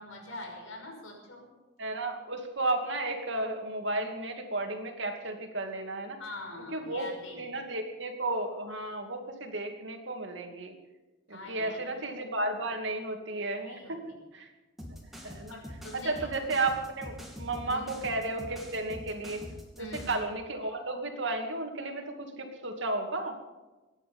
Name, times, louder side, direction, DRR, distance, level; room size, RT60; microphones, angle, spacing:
voice 1, 0.0-1.5 6.2-7.4 11.3-11.9 13.6-13.9 15.5-16.4 17.6-17.9 19.8-20.1, left 1 dB, 90° left, 2 dB, 5.7 m, -44 dB
voice 2, 1.8-6.2 6.7-7.1 7.4-10.7 11.3-14.0 14.3-14.5 15.2-15.6 15.9-19.4 19.8-23.4, right 2 dB, 65° right, 4 dB, 2.4 m, -33 dB
sound 1, 14.8-20.2, equal, ahead, 2.9 m, -44 dB
24.5 x 10.0 x 5.5 m, 1.2 s
head